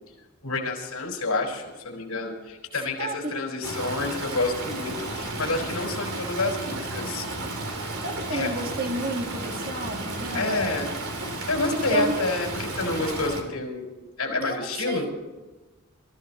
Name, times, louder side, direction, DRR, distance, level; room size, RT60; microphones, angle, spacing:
voice 1, 0.4-7.3 8.3-8.5 10.3-10.9 11.5-15.1, left 2 dB, 75° left, 0 dB, 5.1 m, -28 dB
voice 2, 3.0-3.4 8.0-10.7 11.7-12.2 14.4-15.1, right 2 dB, 40° right, 3 dB, 1.8 m, -31 dB
Stream, 3.6-13.4, right 2 dB, 75° right, 3.0 m, -33 dB
27.0 x 14.5 x 3.0 m, 1.2 s
head